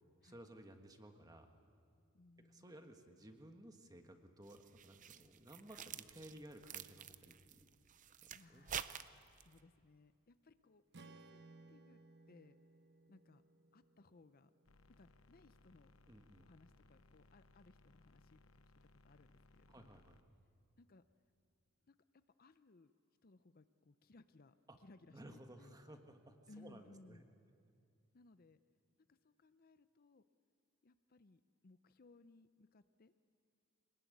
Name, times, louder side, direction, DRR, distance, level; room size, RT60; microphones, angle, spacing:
voice 1, 0.2-1.5 2.4-7.7 8.5-8.7 16.1-16.5 19.7-20.2 25.1-27.2, right 1 dB, 20° right, 6 dB, 1.5 m, -57 dB
voice 2, 2.1-2.7 8.3-8.8 9.1-12.0 12.3-12.6 13.1-13.4 13.7-14.5 15.0-15.9 16.4-18.4 18.7-20.0 20.8-21.0 21.8-22.0 22.4-22.9 23.2-26.0 26.5-27.3 28.1-28.6 29.1-30.2 30.8-33.1, left 2 dB, 45° left, 12 dB, 0.6 m, -64 dB
sound 1, 4.5-9.6, right 9 dB, 40° right, 0.6 m, -49 dB
Strum, 10.9-15.2, right 3 dB, 55° right, 1.0 m, -62 dB
sound 2, 14.6-20.2, left 2 dB, 85° left, 1.0 m, -67 dB
24.5 x 20.0 x 9.5 m, 2.3 s
head